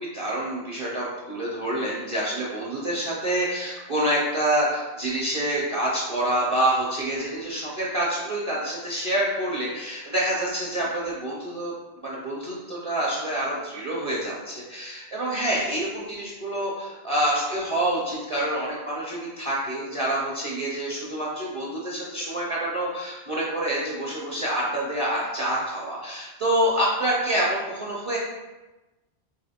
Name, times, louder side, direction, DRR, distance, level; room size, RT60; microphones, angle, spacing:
voice 1, 0.1-11.7 12.0-28.2, right 1 dB, 35° right, -6 dB, 0.6 m, -27 dB
2.9 x 2.4 x 4.2 m, 1.1 s
omnidirectional pair, 1.1 m